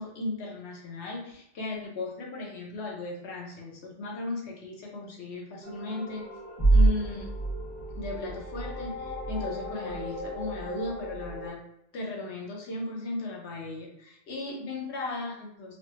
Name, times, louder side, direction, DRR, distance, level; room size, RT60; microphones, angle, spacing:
voice 1, 0.0-6.2 6.7-7.3 8.0-11.6 11.9-15.8, left 2 dB, 70° left, -1 dB, 0.9 m, -36 dB
sound 1, 5.6-11.5, right 2 dB, 25° left, 1.4 m, -29 dB
3.1 x 2.1 x 2.9 m, 0.80 s
omnidirectional pair, 1.2 m